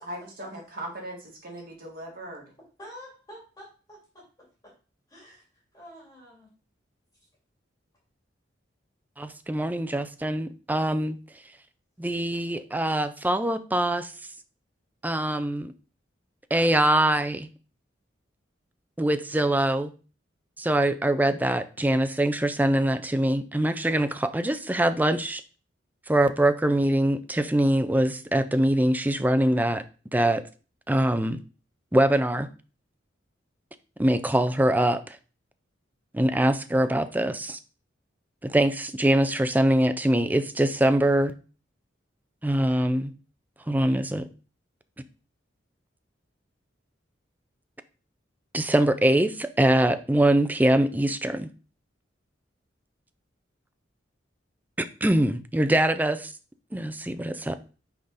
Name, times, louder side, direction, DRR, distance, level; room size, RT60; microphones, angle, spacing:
voice 1, 0.0-2.5, right 1 dB, 50° right, 0 dB, 2.2 m, -39 dB
voice 2, 2.8-4.2 4.6-4.7 5.1-5.4 5.7-6.5, equal, 20° left, -4 dB, 2.6 m, -47 dB
voice 3, 9.2-11.2 12.0-14.1 15.0-15.7 16.5-17.5 19.0-19.9 20.6-25.4 26.1-29.8 30.1-30.4 30.9-31.4 31.9-32.5 34.0-35.2 36.1-37.6 38.4-41.3 42.4-43.1 43.7-44.3 48.5-51.5 54.8-56.3 56.7-57.5, right 1 dB, 10° right, 11 dB, 0.4 m, -23 dB
5.8 x 4.0 x 5.0 m, 0.35 s
head